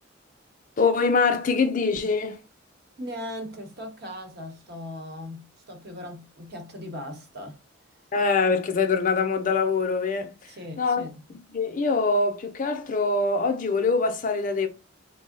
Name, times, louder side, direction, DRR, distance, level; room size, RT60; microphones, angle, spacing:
voice 1, 0.8-2.4 8.1-10.3 10.8-11.0 11.5-14.7, left 4 dB, 40° left, 0.5 m, -23 dB
voice 2, 3.0-7.6 10.5-11.2, left 1 dB, 55° right, 0.9 m, -38 dB
3.5 x 2.0 x 3.7 m
head